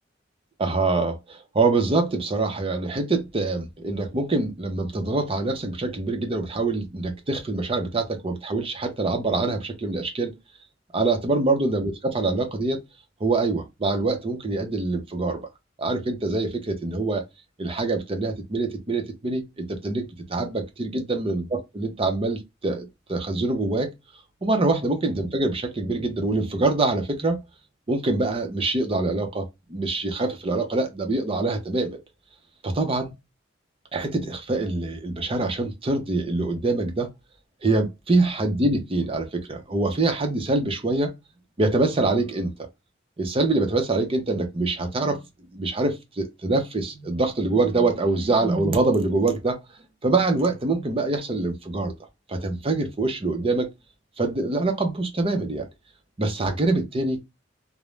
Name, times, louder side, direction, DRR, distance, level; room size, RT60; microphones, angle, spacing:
voice 1, 0.6-10.3 10.9-12.8 13.2-15.4 15.8-17.2 17.6-23.9 24.4-27.4 27.9-32.0 32.6-33.1 33.9-37.1 37.6-41.1 41.6-42.5 43.2-45.2 45.5-49.6 50.0-51.9 52.3-53.7 54.2-55.7 56.2-57.2, right 2 dB, 30° right, 0.6 m, -25 dB
2.4 x 2.0 x 3.1 m
head